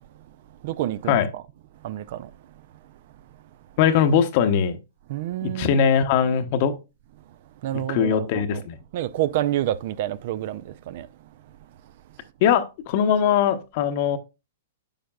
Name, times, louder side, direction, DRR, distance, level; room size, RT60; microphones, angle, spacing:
voice 1, 0.6-1.4 1.8-2.5 2.8-2.9 5.1-5.8 7.6-8.6 8.9-11.1 11.5-11.6, right 13 dB, 55° right, 0.4 m, -29 dB
voice 2, 3.8-4.8 5.4-6.8 7.9-8.8 12.4-14.2, left 8 dB, 50° left, 0.8 m, -21 dB
8.9 x 5.1 x 2.3 m
hypercardioid pair, 120°, 0 cm